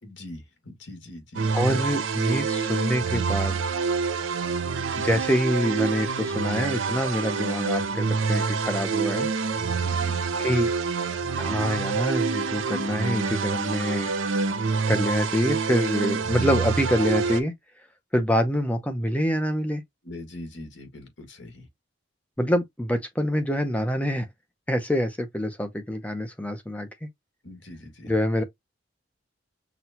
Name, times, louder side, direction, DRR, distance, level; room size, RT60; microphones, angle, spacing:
voice 1, 0.0-1.5 9.8-10.2 20.0-21.7 27.4-28.1, left 1 dB, 75° left, 1.7 m, -42 dB
sound 1, 1.3-17.4, right 5 dB, 90° right, 0.6 m, -27 dB
voice 2, 1.5-3.6 5.0-9.3 10.4-10.7 11.4-14.1 14.9-17.5 18.1-19.8 22.4-24.3 24.7-27.1 28.0-28.4, equal, 10° left, 0.6 m, -26 dB
6.0 x 2.3 x 2.7 m
head